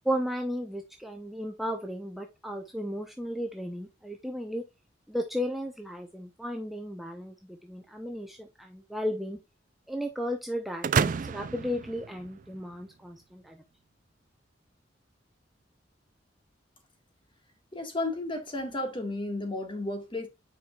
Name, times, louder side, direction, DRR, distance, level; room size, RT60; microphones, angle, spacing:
voice 1, 0.0-4.6 5.1-9.4 9.9-13.6, equal, ahead, 0.7 m, -34 dB
sound 1, 10.8-12.8, right 6 dB, 45° right, 0.4 m, -30 dB
voice 2, 17.7-20.3, left 2 dB, 30° left, 1.8 m, -33 dB
9.3 x 4.9 x 2.4 m
head